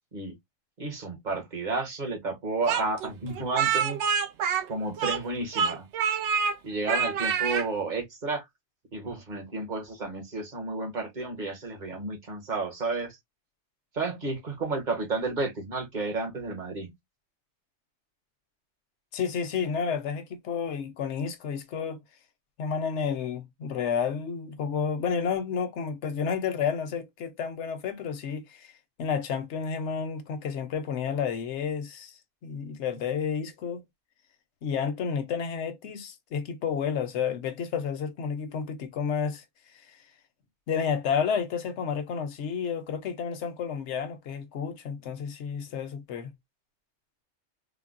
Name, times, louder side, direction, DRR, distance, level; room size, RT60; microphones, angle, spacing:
voice 1, 0.8-4.0 4.7-5.9 6.6-8.4 8.9-13.2 13.9-16.9, right 3 dB, 45° right, 1.1 m, -32 dB
Speech, 2.7-5.3 5.5-6.5 6.9-7.7, right 6 dB, 80° right, 0.9 m, -26 dB
voice 2, 19.1-22.0 22.6-28.7 29.0-33.8 34.6-39.4 40.7-46.3, left 6 dB, 80° left, 1.0 m, -31 dB
3.6 x 2.0 x 2.4 m
omnidirectional pair, 1.2 m